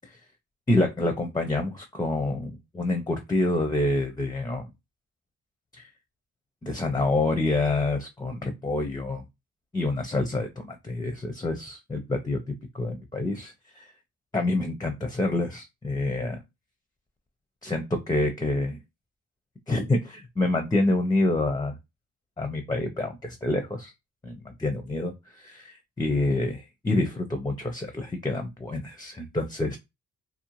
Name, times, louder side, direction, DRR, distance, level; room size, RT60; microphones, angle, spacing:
voice 1, 0.7-4.7 5.7-5.9 6.6-9.2 9.7-13.9 14.3-16.4 17.6-18.8 19.7-21.7 22.4-23.9 24.2-29.8, left 2 dB, 10° left, 6 dB, 0.6 m, -27 dB
2.6 x 2.0 x 3.0 m, 0.22 s
supercardioid pair, 60°, 33 cm